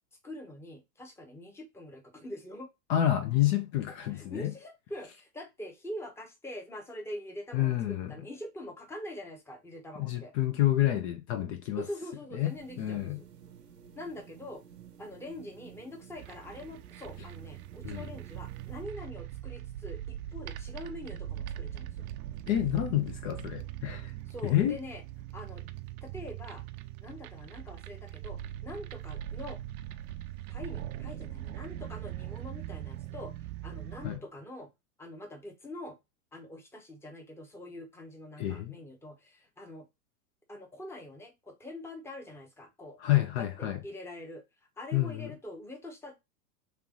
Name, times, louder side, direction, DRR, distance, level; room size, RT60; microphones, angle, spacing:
voice 1, 0.2-2.7 4.1-10.3 11.8-13.3 14.0-14.6 15.0-22.0 24.3-25.0 25.3-25.7 26.0-26.6 27.0-29.6 30.5-33.3 33.6-34.7 35.0-36.0 36.3-39.9 40.5-43.0 43.4-44.4 44.8-46.1, left 1 dB, 5° left, 0.9 m, -44 dB
voice 2, 2.9-4.5 7.5-8.1 10.0-11.8 12.3-12.5 12.8-13.2 17.8-18.1 22.5-24.1 24.4-24.8 34.0-34.2 38.4-38.8 43.0-43.8 44.9-45.3, left 13 dB, 45° left, 0.7 m, -28 dB
sound 1, 12.4-18.8, right 8 dB, 85° right, 1.0 m, -53 dB
sound 2, 16.2-34.2, right 12 dB, 60° right, 0.6 m, -41 dB
3.3 x 3.0 x 3.6 m
hypercardioid pair, 105°, 47 cm